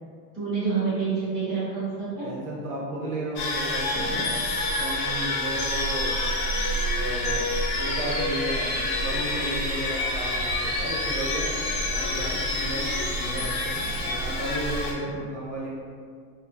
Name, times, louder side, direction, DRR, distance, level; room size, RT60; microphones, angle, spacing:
voice 1, 0.3-2.3 3.9-4.3, right 5 dB, ahead, -15 dB, 0.6 m, -28 dB
voice 2, 2.2-4.2 4.7-6.2 6.9-11.5 11.8-15.7, right 1 dB, 55° right, -4 dB, 0.8 m, -34 dB
sound 1, 3.4-14.9, left 1 dB, 85° left, 0.8 m, -28 dB
sound 2, 4.2-4.9 5.6-6.9 7.2-13.9, left 2 dB, 40° left, 0.7 m, -35 dB
2.8 x 2.6 x 2.3 m, 2.1 s
supercardioid pair, 175°, 50 cm